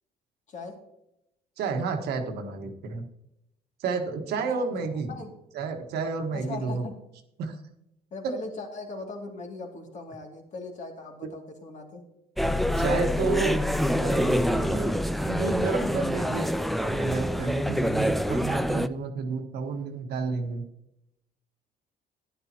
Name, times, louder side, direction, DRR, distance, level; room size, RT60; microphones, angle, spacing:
voice 1, 0.5-0.8 4.6-4.7 5.1-5.3 6.3-6.9 8.1-12.1, left 3 dB, 45° left, 2 dB, 2.5 m, -39 dB
voice 2, 1.6-3.0 3.8-5.1 5.5-6.8 7.4-7.6 8.2-8.3 12.8-13.6 13.9-14.9 15.2-16.5 16.8-20.6, right 4 dB, 75° right, 4 dB, 1.5 m, -30 dB
sound 1, 12.4-18.9, equal, ahead, 0.4 m, -26 dB
11.5 x 10.5 x 3.0 m, 0.84 s
cardioid pair, 110°, 17 cm